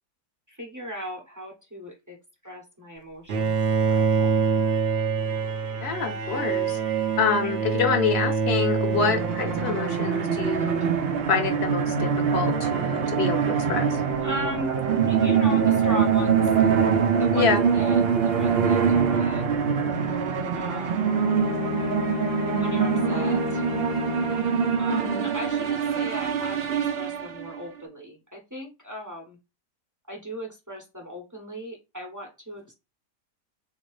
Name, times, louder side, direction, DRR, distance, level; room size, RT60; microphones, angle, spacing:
voice 1, 0.5-2.2 2.4-4.7 7.4-7.5 14.2-14.7 15.0-16.5 17.2-19.5 20.5-21.2 22.5-23.6 24.8-29.4 30.1-32.7, equal, 15° right, 0 dB, 0.6 m, -37 dB
Bowed string instrument, 3.3-10.1, right 5 dB, 55° right, 0.7 m, -25 dB
voice 2, 5.8-6.8 7.2-10.9 11.3-13.4 13.7-13.9 17.3-17.6 24.9-25.2, left 5 dB, 45° left, 5 dB, 0.9 m, -26 dB
sound 1, 8.9-27.6, right 7 dB, 90° right, 0.5 m, -24 dB
Bowed string instrument 2, 21.1-25.2, left 7 dB, 70° left, 0.7 m, -32 dB
3.9 x 2.9 x 3.1 m, 0.25 s
omnidirectional pair, 1.8 m